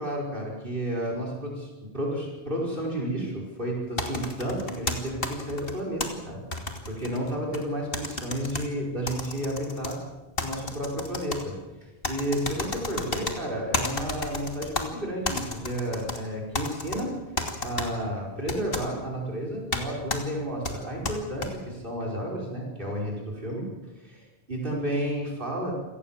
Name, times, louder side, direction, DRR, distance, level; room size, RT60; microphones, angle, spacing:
voice 1, 0.0-6.4 6.9-10.0 10.4-11.6 11.8-17.1 17.6-23.7 24.0-25.7, equal, 55° right, -1 dB, 5.6 m, -31 dB
sound 1, 4.0-6.1 6.5-7.6 7.9-8.6 9.1-9.9 10.4-11.4 12.0-13.3 13.7-14.8 15.2-16.2 16.5-17.0 17.4-17.9 18.5-18.8 19.7-19.8 20.1-20.2 20.6-21.5, left 2 dB, 65° left, 2.9 m, -31 dB
28.0 x 18.0 x 7.5 m, 1.1 s
omnidirectional pair, 1.1 m